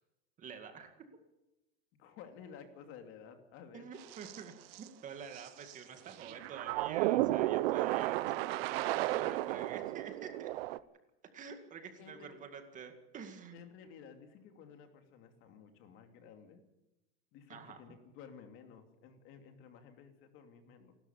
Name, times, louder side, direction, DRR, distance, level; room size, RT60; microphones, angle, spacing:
voice 1, 0.4-1.1 3.7-10.5 11.3-13.6 17.5-17.8, right 6 dB, 25° right, 6 dB, 2.1 m, -48 dB
voice 2, 2.0-3.9 12.0-12.4 13.5-16.6 17.3-20.9, left 7 dB, 45° left, 6 dB, 2.9 m, -54 dB
sound 1, 4.0-4.4 4.7-4.9 5.3-5.7 6.1-10.8, right 16 dB, 70° right, 0.9 m, -33 dB
28.0 x 13.0 x 7.2 m, 0.96 s
supercardioid pair, 165°, 30 cm